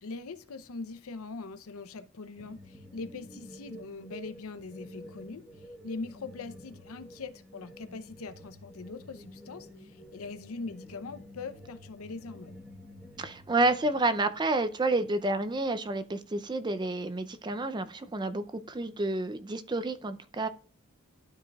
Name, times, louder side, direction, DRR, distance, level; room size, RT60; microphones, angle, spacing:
voice 1, 0.0-12.6, left 3 dB, 75° left, 0.7 m, -42 dB
sound 1, 2.4-14.0, equal, ahead, 1.1 m, -50 dB
voice 2, 13.2-20.5, right 2 dB, 20° right, 0.4 m, -29 dB
12.5 x 4.8 x 2.3 m
head